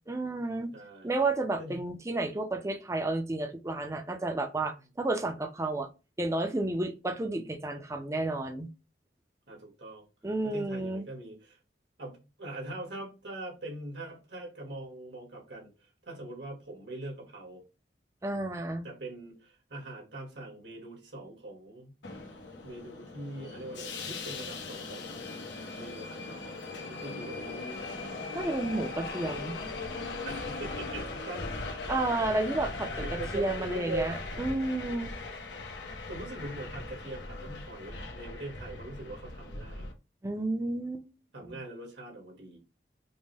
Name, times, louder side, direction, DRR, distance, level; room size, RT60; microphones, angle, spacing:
voice 1, 0.1-0.7 1.0-5.9 6.2-8.7 10.2-11.0 18.2-18.9 28.3-29.6 31.9-35.2 40.2-41.0, right 2 dB, 15° right, 0.5 m, -31 dB
voice 2, 0.7-1.1 1.6-1.8 9.5-10.1 10.4-11.6 12.0-15.7 16.1-17.6 18.8-22.0 22.6-25.2 25.8-26.6 26.9-27.6 30.2-31.5 33.0-34.2 36.1-39.9 41.3-42.6, right 2 dB, 80° right, 1.8 m, -42 dB
Subway metro underground, 22.0-39.9, left 3 dB, 85° left, 1.0 m, -39 dB
5.3 x 2.2 x 3.2 m
head